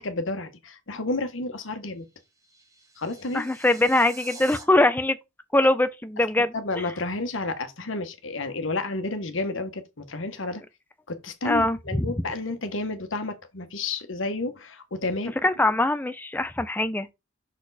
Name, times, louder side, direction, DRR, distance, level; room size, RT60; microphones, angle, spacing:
voice 1, 0.0-2.1 3.0-3.4 6.4-10.6 11.1-15.3, left 2 dB, 70° left, 1.2 m, -31 dB
sound 1, 2.0-4.6, right 3 dB, 15° right, 1.4 m, -46 dB
voice 2, 3.3-5.2 5.5-6.8 11.4-12.1 15.4-17.1, left 2 dB, 10° left, 0.5 m, -22 dB
6.3 x 4.3 x 4.1 m
head